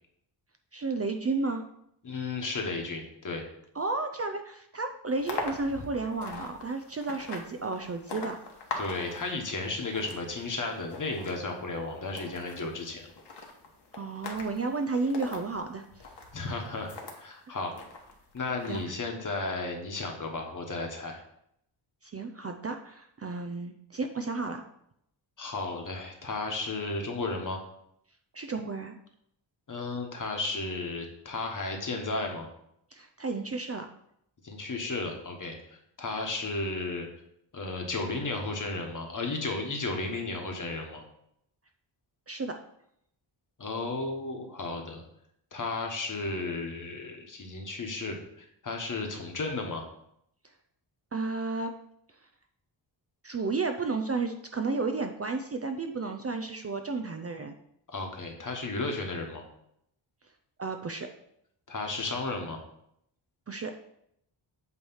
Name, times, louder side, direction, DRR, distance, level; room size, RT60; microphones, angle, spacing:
voice 1, 0.7-1.6 3.7-8.4 13.9-16.1 17.5-17.6 18.7-18.8 22.0-24.6 28.3-29.0 32.9-33.9 42.3-42.5 51.1-51.7 53.2-57.5 60.6-61.1 63.5-63.7, right 3 dB, 35° right, 5 dB, 0.4 m, -32 dB
voice 2, 2.0-3.4 8.8-13.1 16.3-17.7 18.3-21.2 25.4-27.6 29.7-32.5 34.4-35.6 36.0-37.1 37.5-41.0 43.6-45.0 45.5-49.8 57.9-59.5 61.7-62.6, left 3 dB, 40° left, 2 dB, 1.3 m, -34 dB
sound 1, 5.1-17.2 17.7-18.8, left 3 dB, 60° left, 1.3 m, -42 dB
8.3 x 3.2 x 5.5 m, 0.74 s
wide cardioid pair, 130°, 47 cm